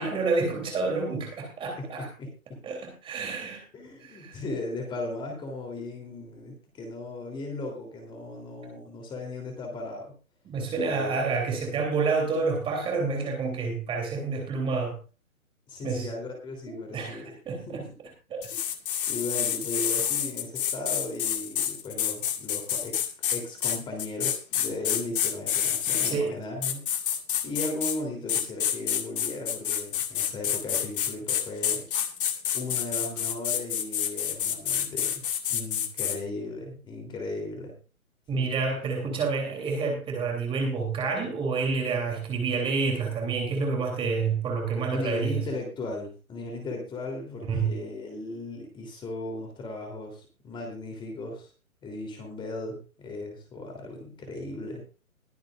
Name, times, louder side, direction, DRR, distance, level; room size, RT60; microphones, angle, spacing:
voice 1, 0.0-2.1 2.6-3.6 4.0-4.4 10.4-15.0 15.8-16.1 16.7-18.5 26.0-26.4 38.3-45.4 47.4-47.7, right 4 dB, 10° right, 2 dB, 3.3 m, -29 dB
voice 2, 1.8-2.6 3.7-10.1 10.7-11.2 15.7-17.3 17.7-17.9 18.5-18.6 19.1-26.8 27.4-31.9 32.5-35.2 35.5-37.7 38.3-38.5 44.9-51.5 51.8-54.8, left 2 dB, 10° left, 2 dB, 3.3 m, -36 dB
sound 1, 18.4-26.1 26.6-28.0 28.3-36.2, left 9 dB, 40° left, 2.1 m, -28 dB
21.5 x 9.1 x 2.5 m, 0.33 s
figure-of-eight pair, 140°, 42 cm